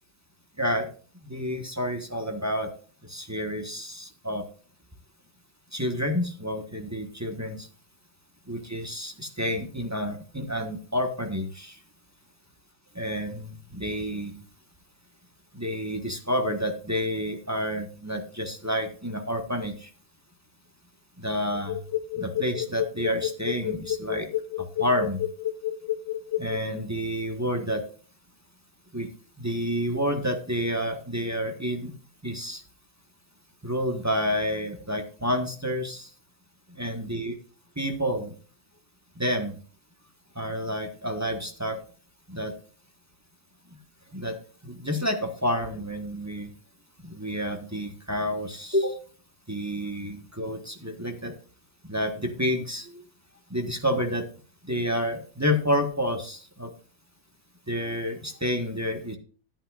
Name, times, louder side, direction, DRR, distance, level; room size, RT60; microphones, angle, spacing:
voice 1, 1.2-2.7 3.1-4.4 5.7-7.7 8.5-11.8 12.9-14.4 15.5-19.9 21.2-21.8 22.1-24.3 24.8-25.2 26.4-27.8 28.9-29.1 29.4-31.9 32.2-32.6 33.6-36.1 36.8-37.4 37.8-38.3 39.2-39.6 40.3-41.8 42.3-42.5 44.1-44.3 44.6-46.5 47.0-49.0 49.5-51.3 51.9-53.0 53.5-54.3 54.7-56.7 57.7-59.2, equal, 10° right, 3 dB, 1.0 m, -29 dB
sound 1, 21.5-26.6, left 13 dB, 55° left, 0.8 m, -30 dB
14.0 x 8.9 x 2.4 m, 0.40 s
omnidirectional pair, 2.2 m